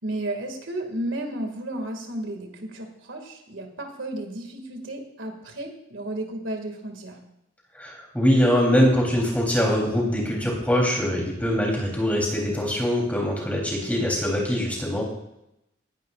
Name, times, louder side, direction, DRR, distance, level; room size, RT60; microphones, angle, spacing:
voice 1, 0.0-7.2, right 1 dB, 90° right, 4 dB, 2.2 m, -33 dB
voice 2, 7.8-15.0, equal, 10° left, -1 dB, 3.4 m, -23 dB
18.0 x 11.0 x 2.5 m, 0.83 s
head